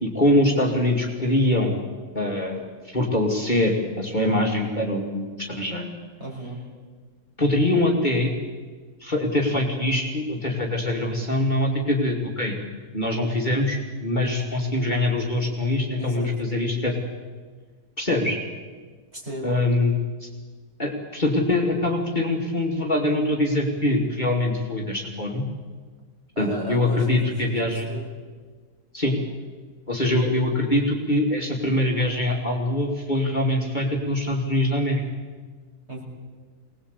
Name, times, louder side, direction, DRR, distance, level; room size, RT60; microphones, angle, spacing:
voice 1, 0.0-1.8 2.1-5.9 7.4-8.3 9.0-12.5 12.9-16.9 18.0-18.4 19.4-20.3 20.8-25.4 26.4-27.9 28.9-29.1 29.9-35.0, left 1 dB, 30° left, -1 dB, 3.0 m, -23 dB
voice 2, 6.2-6.6 15.9-16.3 19.1-19.5 26.4-28.1 35.9-36.0, right 1 dB, 40° right, -2 dB, 6.8 m, -35 dB
25.0 x 19.5 x 8.5 m, 1.5 s
omnidirectional pair, 1.7 m